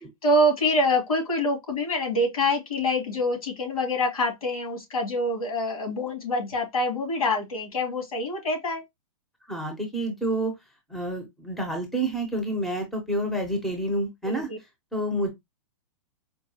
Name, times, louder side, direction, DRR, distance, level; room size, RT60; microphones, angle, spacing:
voice 1, 0.2-8.8 14.2-14.6, left 1 dB, 85° left, 2.4 m, -25 dB
voice 2, 9.5-10.5 10.9-14.5 14.9-15.3, right 1 dB, ahead, 0.7 m, -28 dB
4.5 x 2.3 x 2.8 m
hypercardioid pair, 155°, 18 cm